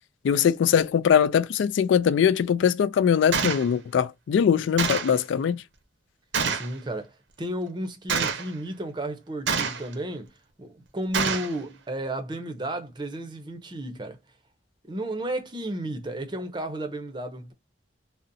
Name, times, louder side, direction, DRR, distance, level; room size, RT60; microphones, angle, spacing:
voice 1, 0.2-5.6, left 8 dB, 80° left, 0.3 m, -21 dB
Gunshot gunfire, 3.3-3.7 4.8-5.2 6.3-6.7 8.1-8.5 9.5-9.9 11.1-11.5, right 5 dB, 80° right, 0.6 m, -26 dB
voice 2, 6.5-10.3 10.6-14.2 14.9-17.5, right 1 dB, 25° right, 0.5 m, -33 dB
3.9 x 2.0 x 2.5 m
head